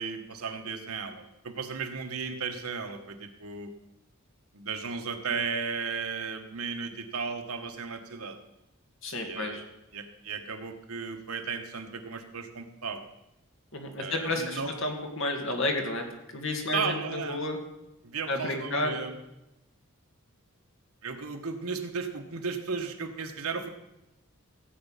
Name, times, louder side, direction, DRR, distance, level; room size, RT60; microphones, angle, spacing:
voice 1, 0.0-3.7 4.5-8.4 9.1-9.6 9.9-13.1 14.0-14.8 16.7-17.4 18.0-19.1 21.0-23.7, right 5 dB, 80° right, 6 dB, 1.3 m, -35 dB
voice 2, 9.0-9.6 13.7-16.1 16.3-17.6 18.3-19.0, left 2 dB, 60° left, 3 dB, 2.2 m, -31 dB
16.0 x 8.4 x 5.7 m, 0.93 s
head